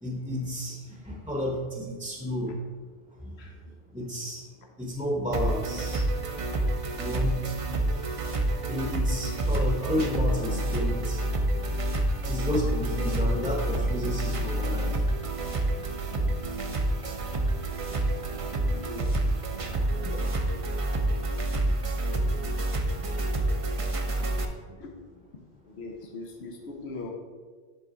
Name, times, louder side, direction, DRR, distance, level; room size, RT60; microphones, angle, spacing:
voice 1, 0.0-2.6 3.9-4.4 4.8-6.0 6.9-7.4 8.7-11.5 12.3-15.1 17.8-18.4 19.6-19.7 20.0-20.5 22.3-22.4 23.0-23.1, left 1 dB, 5° right, -1 dB, 0.8 m, -32 dB
voice 2, 3.4-3.8 9.5-9.6 10.3-10.5 18.7-19.1 24.8-24.9 25.6-27.1, left 3 dB, 90° left, 1 dB, 1.1 m, -41 dB
sound 1, 5.3-24.5, right 1 dB, 40° right, 0.6 m, -28 dB
9.7 x 3.6 x 4.0 m, 1.5 s
omnidirectional pair, 1.1 m